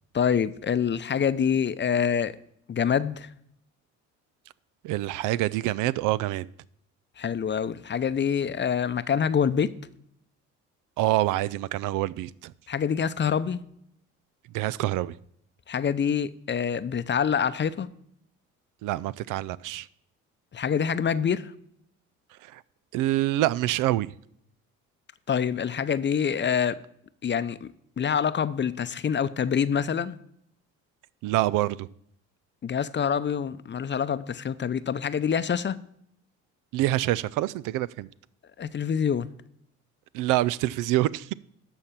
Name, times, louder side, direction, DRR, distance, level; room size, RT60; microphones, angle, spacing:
voice 1, 0.1-2.3 2.7-3.3 7.2-9.7 12.7-13.6 15.7-17.9 20.5-21.5 25.3-26.8 27.2-27.7 28.0-30.2 32.6-35.8 38.6-39.3, left 7 dB, 35° left, 0.7 m, -26 dB
voice 2, 4.8-6.5 11.0-12.5 14.5-15.2 18.8-19.9 22.4-22.6 22.9-24.1 31.2-31.9 36.7-38.1 40.1-41.3, right 15 dB, 75° right, 0.5 m, -26 dB
13.0 x 4.4 x 7.3 m
supercardioid pair, 70°, 32 cm